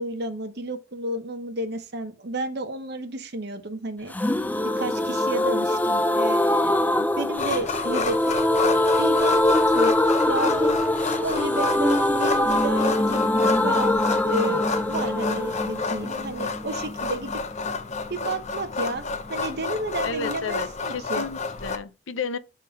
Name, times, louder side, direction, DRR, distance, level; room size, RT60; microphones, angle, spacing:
voice 1, 0.0-4.1 4.8-8.4 9.0-9.9 10.3-10.7 11.2-17.3 18.1-21.2, right 1 dB, 55° right, 1.0 m, -32 dB
sound 1, 4.1-17.7 18.0-18.1 18.3-18.4, left 1 dB, 10° left, 0.3 m, -23 dB
sound 2, 7.4-21.8, left 4 dB, 35° left, 0.7 m, -31 dB
voice 2, 20.0-22.4, left 4 dB, 80° left, 0.6 m, -32 dB
6.5 x 3.7 x 5.2 m
head